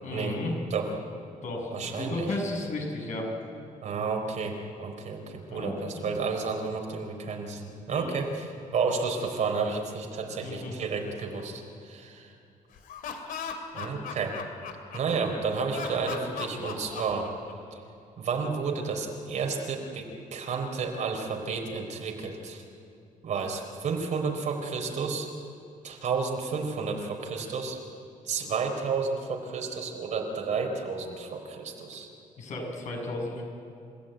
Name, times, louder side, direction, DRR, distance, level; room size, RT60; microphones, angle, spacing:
voice 1, 0.0-0.5 1.4-1.7 2.0-3.3 5.5-5.9 7.9-8.2 10.4-10.7 32.4-33.4, left 2 dB, 60° left, 0 dB, 7.2 m, -33 dB
voice 2, 1.7-2.3 3.8-12.3 13.7-14.4 14.9-17.3 18.2-22.6 23.2-25.3 25.8-27.8 28.2-32.1, right 5 dB, 60° right, 2 dB, 4.2 m, -31 dB
Laughter, 12.7-15.2 15.7-17.7, left 7 dB, 80° left, 2.6 m, -37 dB
30.0 x 16.0 x 9.2 m, 2.6 s
cardioid pair, 115°, 14 cm